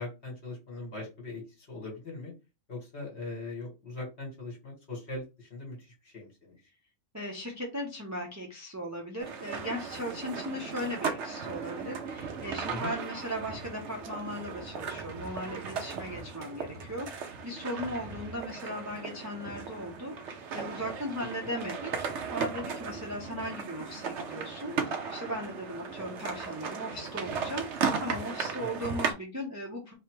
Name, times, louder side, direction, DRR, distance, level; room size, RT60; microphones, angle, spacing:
voice 1, 0.0-2.3 2.7-6.6 12.7-12.9 21.4-21.5 28.6-28.8, left 2 dB, 45° left, -1 dB, 1.9 m, -40 dB
voice 2, 7.1-22.0 22.3-29.9, equal, 15° right, 0 dB, 0.6 m, -37 dB
sound 1, 9.2-29.1, right 5 dB, 60° right, 0.9 m, -36 dB
3.2 x 2.9 x 4.6 m, 0.28 s
omnidirectional pair, 1.6 m